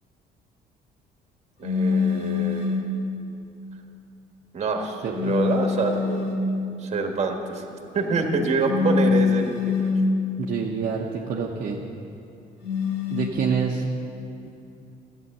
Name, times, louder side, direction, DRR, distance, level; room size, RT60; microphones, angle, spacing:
sound 1, 1.6-3.0 5.1-6.5 8.6-10.2 12.6-13.3, left 5 dB, 80° left, 1.5 m, -24 dB
voice 1, 1.6-2.8 4.5-6.3 6.8-7.6 7.9-9.5 9.8-9.9, right 4 dB, 40° right, 3 dB, 1.5 m, -26 dB
voice 2, 10.4-11.8 13.1-13.9, right 6 dB, 55° right, -1 dB, 0.9 m, -27 dB
12.5 x 9.1 x 6.7 m, 2.7 s
cardioid pair, 110°, 17 cm